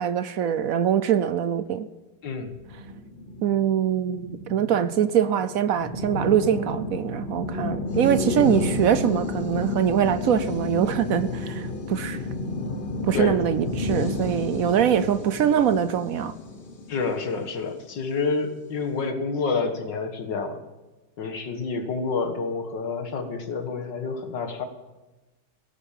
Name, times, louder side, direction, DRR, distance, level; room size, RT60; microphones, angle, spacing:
voice 1, 0.0-1.9 3.4-12.2 13.1-16.3, right 9 dB, 65° right, 0.9 m, -23 dB
voice 2, 2.2-2.6 13.1-13.4 16.9-20.6 21.2-24.6, left 4 dB, 70° left, 2.2 m, -28 dB
sound 1, 2.5-18.0, left 2 dB, 40° left, 0.8 m, -31 dB
17.0 x 9.6 x 7.4 m
omnidirectional pair, 2.0 m